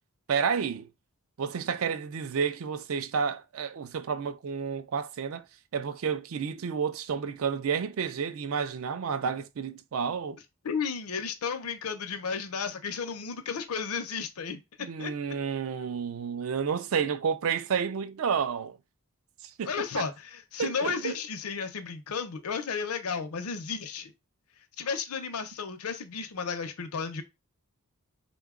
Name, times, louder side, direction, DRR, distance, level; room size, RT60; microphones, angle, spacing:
voice 1, 0.3-0.9 1.4-5.4 5.7-10.4 14.8-18.8 19.6-19.7 20.0-20.1 20.6-21.1, right 6 dB, 70° right, 0.4 m, -30 dB
voice 2, 10.6-14.6 15.0-15.1 19.6-24.1 24.8-27.2, left 5 dB, 80° left, 0.6 m, -33 dB
3.7 x 2.2 x 3.6 m
head